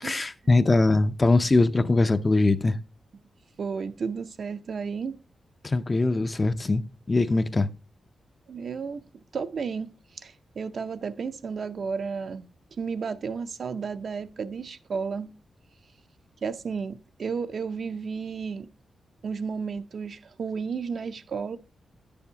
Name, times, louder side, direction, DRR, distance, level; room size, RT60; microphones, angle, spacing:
voice 1, 0.0-2.8 5.6-7.7, left 2 dB, 25° left, 0.6 m, -22 dB
voice 2, 3.6-5.2 8.5-9.0 9.3-12.5 12.8-15.3 16.4-18.7 19.2-21.6, right 5 dB, 60° right, 0.7 m, -32 dB
10.5 x 7.0 x 2.8 m
wide cardioid pair, 110°, 0 cm